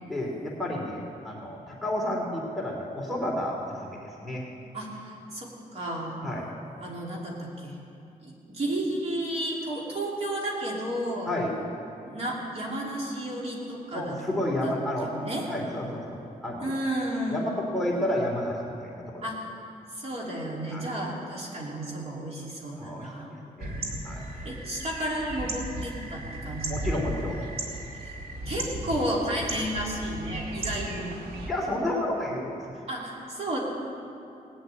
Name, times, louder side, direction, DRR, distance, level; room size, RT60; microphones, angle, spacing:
voice 1, 0.1-4.4 6.2-6.5 11.3-11.6 13.9-15.1 15.5-16.7 17.3-19.2 20.7-20.9 22.8-23.8 24.0-24.4 26.7-27.4 31.5-32.8, left 1 dB, ahead, -2 dB, 2.5 m, -31 dB
voice 2, 4.7-6.3 6.8-7.7 8.2-11.3 12.0-14.2 14.6-14.7 15.0-15.5 16.6-17.6 19.2-19.4 19.9-23.3 24.4-26.9 27.9-28.1 28.5-31.1 32.9-33.6, right 1 dB, 45° right, -3 dB, 2.9 m, -32 dB
sound 1, 23.6-31.5, right 1 dB, 85° right, 1.9 m, -35 dB
18.5 x 8.0 x 9.0 m, 2.7 s
wide cardioid pair, 135°, 15 cm